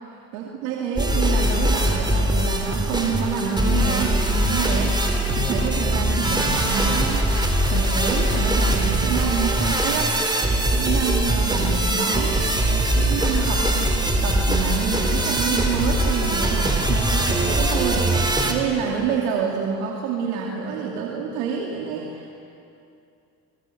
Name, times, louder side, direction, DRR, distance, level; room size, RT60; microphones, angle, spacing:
voice 1, 0.3-13.7 14.2-22.3, right 6 dB, 85° right, -1 dB, 2.6 m, -28 dB
sound 1, 1.0-18.5, right 1 dB, 10° right, 4.2 m, -22 dB
26.5 x 24.0 x 7.9 m, 2.6 s
supercardioid pair, 80°, 40 cm